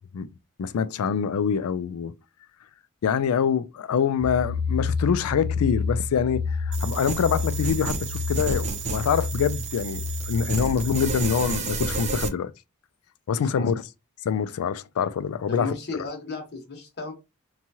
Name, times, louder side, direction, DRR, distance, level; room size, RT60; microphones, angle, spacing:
voice 1, 0.6-2.1 3.0-12.5 13.3-13.7 14.2-15.7, left 7 dB, 80° left, 0.4 m, -25 dB
sound 1, 4.2-12.0, left 4 dB, 80° right, 0.5 m, -30 dB
sound 2, 6.7-12.3, right 4 dB, 35° right, 0.5 m, -31 dB
voice 2, 13.4-13.8 15.5-17.1, left 3 dB, 50° left, 1.1 m, -34 dB
3.0 x 2.3 x 2.7 m
head